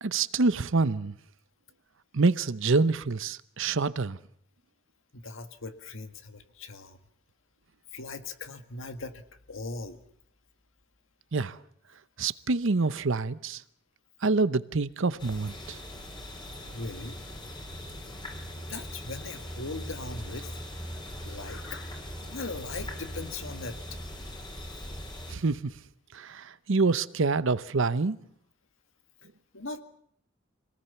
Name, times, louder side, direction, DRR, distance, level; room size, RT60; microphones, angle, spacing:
voice 1, 0.0-1.1 2.1-4.2 11.3-11.6 12.2-13.6 14.2-15.8 25.3-25.7 26.1-28.2, right 3 dB, 65° right, 0.8 m, -26 dB
voice 2, 5.1-7.0 7.9-10.0 16.7-17.2 18.6-20.5 21.2-23.8 29.5-29.8, left 3 dB, 70° left, 2.0 m, -39 dB
sound 1, 15.2-25.3, equal, 25° left, 3.8 m, -40 dB
25.5 x 19.0 x 7.0 m
head